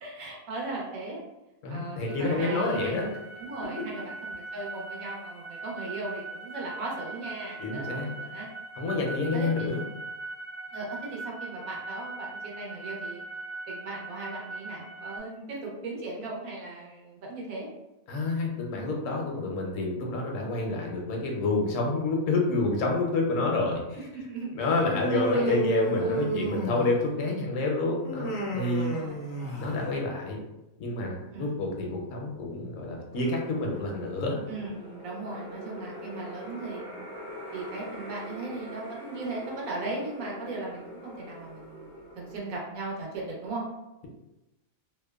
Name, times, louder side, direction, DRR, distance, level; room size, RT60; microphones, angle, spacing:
voice 1, 0.0-1.2 1.7-8.5 8.8-9.0 9.3-9.7 10.7-13.2 13.7-17.7 23.4-23.5 24.1-24.8 25.1-26.2 28.8-29.7 31.3-31.5 34.5-37.1 37.5-43.6, right 2 dB, 80° right, -3 dB, 1.1 m, -38 dB
voice 2, 1.6-3.1 7.6-8.1 8.8-9.8 18.1-23.8 24.5-29.0 29.6-30.4 30.8-34.4, left 2 dB, 75° left, 0 dB, 0.9 m, -28 dB
sound 1, 2.1-15.2, right 3 dB, 65° right, 0.8 m, -40 dB
Human voice, 24.9-27.2 28.0-29.9, right 1 dB, 60° left, 0.6 m, -31 dB
sound 2, 33.1-42.4, equal, 30° right, 0.4 m, -43 dB
2.8 x 2.0 x 2.2 m, 0.97 s
omnidirectional pair, 1.4 m